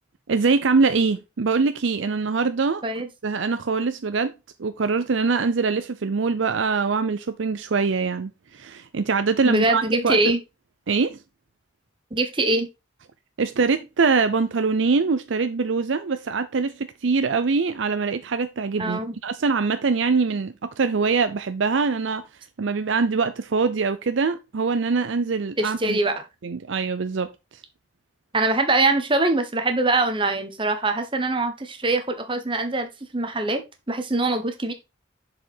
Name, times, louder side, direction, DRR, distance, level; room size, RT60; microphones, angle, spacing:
voice 1, 0.3-2.8 3.2-4.3 4.6-10.4 10.9-11.2 13.4-22.2 22.6-26.0 26.4-27.6, right 4 dB, 85° right, 0.6 m, -23 dB
voice 2, 9.4-10.4 12.1-12.7 18.8-19.2 25.6-26.1 28.3-33.6 33.9-34.7, right 2 dB, 25° right, 1.2 m, -23 dB
6.9 x 5.0 x 4.4 m
head